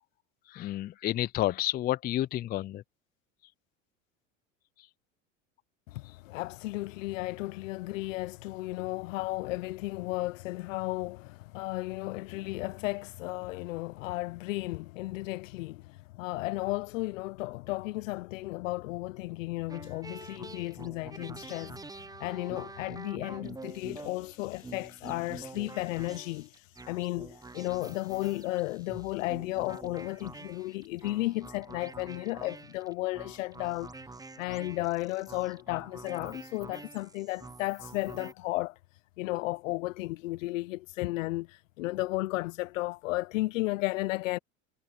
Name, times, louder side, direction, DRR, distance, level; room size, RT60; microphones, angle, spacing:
voice 1, 0.5-2.8, left 14 dB, 25° left, 0.4 m, -30 dB
voice 2, 5.9-21.8 22.2-26.5 26.9-33.9 34.4-38.7 39.2-44.4, left 19 dB, 80° left, 0.7 m, -34 dB
sound 1, 19.7-38.3, right 3 dB, 10° right, 1.0 m, -47 dB
hypercardioid pair, 90°, 39 cm